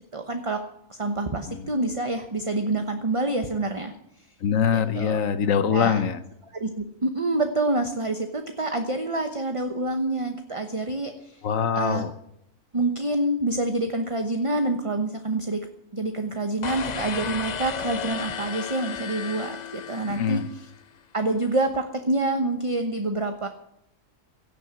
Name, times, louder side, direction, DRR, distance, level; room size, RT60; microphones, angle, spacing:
voice 1, 0.1-0.6 0.9-3.9 4.7-5.2 5.7-6.1 6.5-11.4 11.7-12.0 12.7-20.4 21.1-23.5, right 2 dB, 25° right, 6 dB, 1.1 m, -27 dB
voice 2, 4.4-6.2 11.4-12.1 20.1-20.5, left 7 dB, 85° left, 12 dB, 1.3 m, -24 dB
sound 1, 16.6-20.8, left 7 dB, 45° left, 0.6 m, -34 dB
17.0 x 7.1 x 8.9 m, 0.78 s
omnidirectional pair, 1.4 m